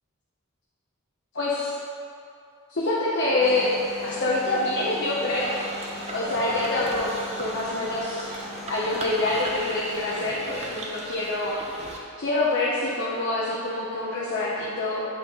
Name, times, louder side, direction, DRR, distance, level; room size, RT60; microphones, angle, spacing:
voice 1, 1.3-1.7 2.7-3.8 4.0-7.1 7.4-8.3 8.7-11.6 11.9-15.1, left 2 dB, 55° left, -7 dB, 0.8 m, -26 dB
sound 1, 3.4-10.3, left 1 dB, ahead, 0.9 m, -39 dB
sound 2, 5.2-12.0, right 2 dB, 30° right, 0.6 m, -39 dB
7.9 x 4.1 x 3.8 m, 2.6 s
head